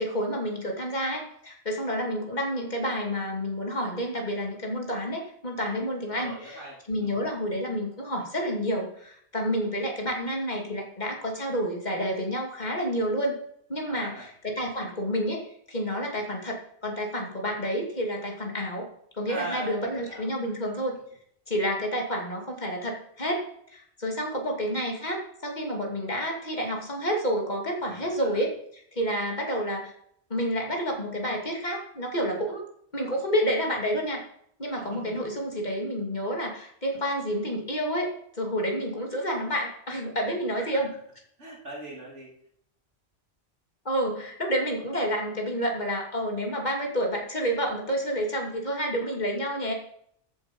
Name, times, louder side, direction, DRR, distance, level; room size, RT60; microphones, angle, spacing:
voice 1, 0.0-6.6 6.9-13.4 13.7-16.6 16.8-18.9 19.2-20.9 21.5-29.9 30.3-32.6 32.9-34.2 34.6-40.9 43.8-49.7, equal, 40° left, 1 dB, 2.7 m, -29 dB
voice 2, 6.2-7.1 13.9-14.2 19.3-20.3 27.8-28.4 34.8-35.2 41.4-42.3, right 2 dB, 80° right, -3 dB, 3.4 m, -40 dB
13.5 x 7.6 x 5.4 m, 0.68 s
omnidirectional pair, 1.2 m